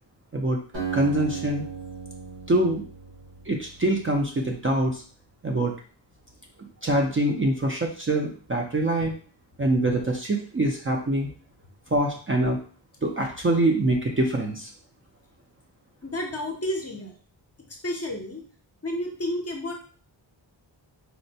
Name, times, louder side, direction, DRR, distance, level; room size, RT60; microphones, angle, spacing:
Acoustic guitar, 0.7-4.3, right 6 dB, 85° right, 1.5 m, -36 dB
voice 1, 0.9-1.6 2.5-2.8 3.5-5.0 5.4-5.7 6.8-9.1 9.6-11.3 11.9-12.6 13.0-14.7, right 1 dB, 30° right, 0 dB, 0.4 m, -24 dB
voice 2, 16.0-17.1 17.8-18.4 18.8-19.7, left 1 dB, 35° left, 2 dB, 0.6 m, -31 dB
4.2 x 2.1 x 2.6 m, 0.41 s
wide cardioid pair, 120°, 46 cm